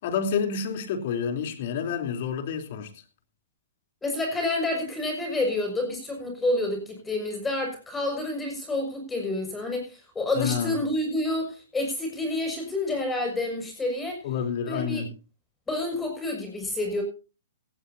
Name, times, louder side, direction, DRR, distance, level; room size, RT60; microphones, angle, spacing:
voice 1, 0.0-2.9 10.4-10.8 14.2-15.1, left 6 dB, 55° left, 3.5 m, -29 dB
voice 2, 4.0-14.2 14.7-15.0 15.7-17.0, left 2 dB, 10° left, 6.3 m, -29 dB
17.5 x 16.0 x 2.8 m
hypercardioid pair, 140°, 0 cm